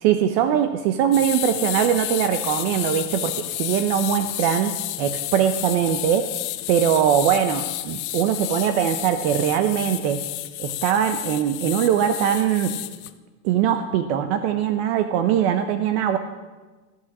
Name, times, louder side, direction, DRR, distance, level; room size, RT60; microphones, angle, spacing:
voice 1, 0.0-6.3 6.7-10.2 10.6-12.7 13.4-16.2, right 9 dB, 50° right, 8 dB, 0.8 m, -21 dB
sound 1, 1.1-13.1, left 17 dB, 55° left, 0.7 m, -31 dB
14.5 x 8.7 x 6.1 m, 1.3 s
supercardioid pair, 165°, 41 cm